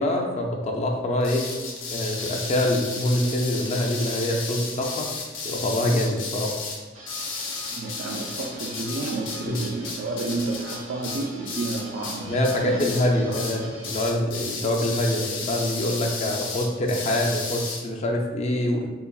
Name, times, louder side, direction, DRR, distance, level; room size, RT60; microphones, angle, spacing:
voice 1, 0.0-1.5 1.9-5.1 5.4-6.5 9.5-9.7 12.2-18.9, left 1 dB, 35° left, 1 dB, 0.4 m, -25 dB
sound 1, 1.2-12.2 12.4-13.1 13.3-13.6 13.8-17.8, left 4 dB, 80° left, 0.7 m, -33 dB
sound 2, 6.9-14.1, right 1 dB, 85° right, 1.0 m, -43 dB
voice 2, 7.7-13.8, right 2 dB, 55° right, -1 dB, 0.3 m, -31 dB
3.9 x 2.8 x 2.3 m, 1.3 s
head